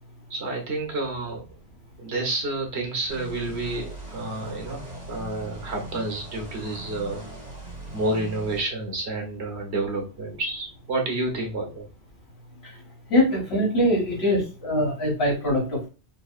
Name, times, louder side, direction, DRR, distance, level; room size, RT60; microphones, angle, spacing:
voice 1, 0.3-1.5 2.0-7.2 7.9-11.9, right 2 dB, 75° right, 2 dB, 1.5 m, -29 dB
sound 1, 3.1-8.6, right 1 dB, 40° right, 1.4 m, -40 dB
voice 2, 13.1-15.9, left 1 dB, 70° left, -4 dB, 2.4 m, -23 dB
5.5 x 2.7 x 2.4 m, 0.32 s
omnidirectional pair, 1.1 m